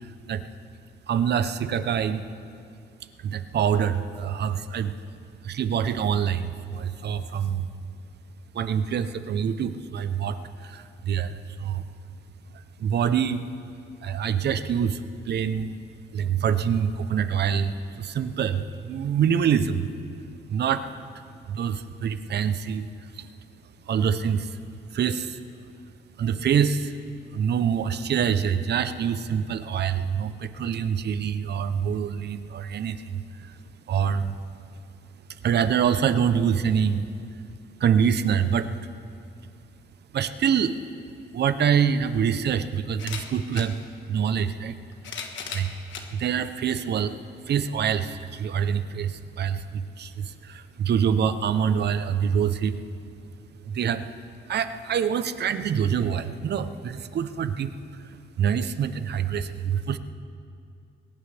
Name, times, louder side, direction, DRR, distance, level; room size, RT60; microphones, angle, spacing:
voice 1, 1.1-2.2 3.2-4.9 5.4-7.7 8.5-11.8 12.8-13.4 14.0-15.0 15.3-15.8 16.1-19.9 20.5-20.8 21.5-22.9 23.2-23.3 23.9-24.5 24.9-25.4 26.2-26.9 27.3-33.2 33.9-34.3 35.4-37.1 37.8-38.7 40.1-40.8 41.3-43.8 44.1-44.8 45.5-45.7 46.1-47.2 47.5-52.8 53.6-54.0 54.5-57.7 58.4-60.0, right 8 dB, 55° right, 11 dB, 0.8 m, -25 dB
sound 1, 41.5-41.6 42.9-43.7 44.7-46.1 46.8-46.9 48.2-48.3, left 6 dB, 70° left, 1.5 m, -37 dB
21.5 x 17.5 x 3.5 m, 2.4 s
cardioid pair, 90°, 20 cm